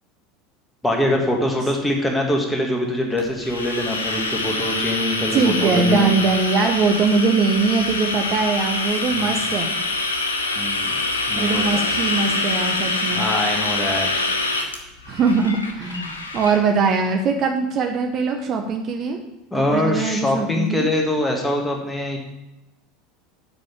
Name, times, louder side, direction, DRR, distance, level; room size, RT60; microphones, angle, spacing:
voice 1, 0.8-6.1 9.1-9.4 10.6-10.9 11.3-11.9 13.1-14.1 19.5-22.2, left 1 dB, 10° left, 0 dB, 1.9 m, -23 dB
sound 1, 3.2-16.6, left 2 dB, 80° left, 1.1 m, -25 dB
voice 2, 5.3-9.8 11.4-13.3 15.1-19.2 19.7-20.9, right 4 dB, 40° right, 4 dB, 0.9 m, -21 dB
7.6 x 5.4 x 7.4 m, 0.96 s
figure-of-eight pair, 75°, 0 cm